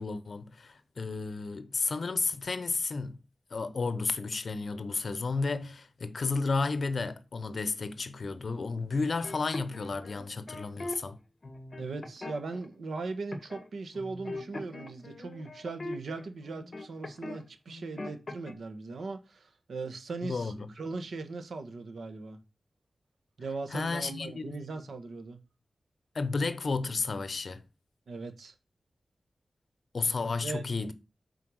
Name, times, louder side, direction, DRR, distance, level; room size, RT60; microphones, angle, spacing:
voice 1, 0.0-3.2 3.5-11.2 20.2-20.7 23.7-24.6 26.1-27.6 29.9-30.9, left 4 dB, 55° left, 0.8 m, -32 dB
sound 1, 9.2-11.0 11.4-12.6 13.3-13.7 13.9-17.4 17.7-18.5, left 2 dB, 35° left, 1.4 m, -41 dB
voice 2, 11.8-22.4 23.4-25.4 28.1-28.5 30.4-30.6, right 3 dB, 80° right, 1.5 m, -39 dB
8.3 x 4.6 x 6.4 m
wide cardioid pair, 145°, 0 cm